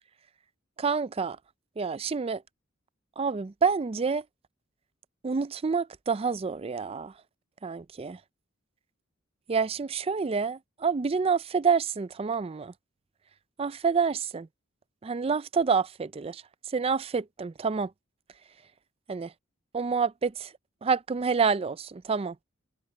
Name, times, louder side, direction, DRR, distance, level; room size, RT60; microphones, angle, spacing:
voice 1, 0.8-1.4 1.8-2.4 3.2-4.2 5.2-7.1 7.6-8.2 9.5-12.7 13.6-14.5 15.0-16.4 16.7-17.9 19.1-19.3 19.7-20.5 20.8-22.4, right 5 dB, 30° right, 0.4 m, -28 dB
head